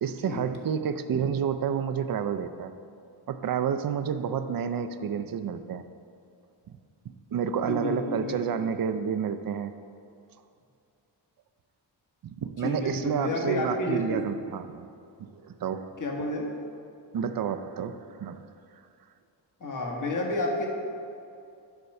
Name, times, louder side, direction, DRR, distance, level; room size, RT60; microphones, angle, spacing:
voice 1, 0.0-2.7 3.3-5.8 7.0-9.7 12.2-14.9 15.2-15.9 17.1-18.4, right 7 dB, 50° right, 9 dB, 0.5 m, -30 dB
voice 2, 7.7-8.4 12.6-14.2 16.0-16.5 19.6-20.7, left 1 dB, 45° left, 0 dB, 1.4 m, -30 dB
9.6 x 4.5 x 6.5 m, 2.5 s
wide cardioid pair, 125°, 45 cm